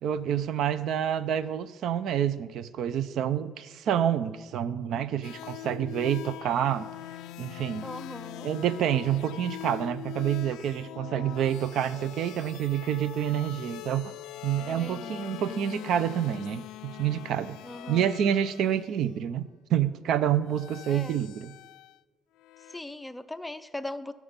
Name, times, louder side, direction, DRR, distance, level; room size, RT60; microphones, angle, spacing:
voice 1, 0.0-6.9 7.4-7.9 8.4-14.1 14.4-17.6 17.9-21.5, right 9 dB, 70° right, 14 dB, 0.5 m, -28 dB
sound 1, 5.2-18.8 20.4-22.0 22.4-22.8, left 13 dB, 85° left, 0.3 m, -42 dB
voice 2, 7.8-8.5 14.7-15.3 17.6-18.1 20.9-21.2 22.7-24.1, left 1 dB, 5° left, 11 dB, 0.4 m, -39 dB
15.5 x 6.0 x 5.2 m, 1.4 s
cardioid pair, 125°, 0 cm